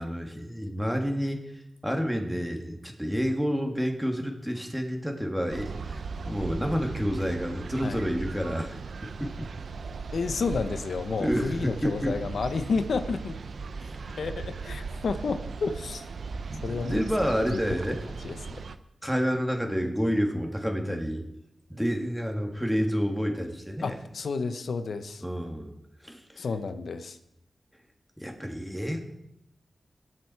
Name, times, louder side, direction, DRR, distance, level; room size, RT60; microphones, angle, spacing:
voice 1, 0.0-9.5 11.2-12.1 13.8-14.0 16.5-18.0 19.0-21.2 21.7-24.0 25.2-25.7 26.0-26.5 28.2-29.0, equal, ahead, 2 dB, 2.9 m, -29 dB
sound 1, 5.5-18.8, right 4 dB, 75° right, 0.7 m, -38 dB
voice 2, 10.1-13.4 14.2-16.1 16.6-17.0 17.5-17.6 18.2-18.7 23.8-25.2 26.4-27.2, left 4 dB, 80° left, 10 dB, 1.0 m, -31 dB
21.0 x 7.7 x 4.8 m, 0.82 s
cardioid pair, 50°, 0 cm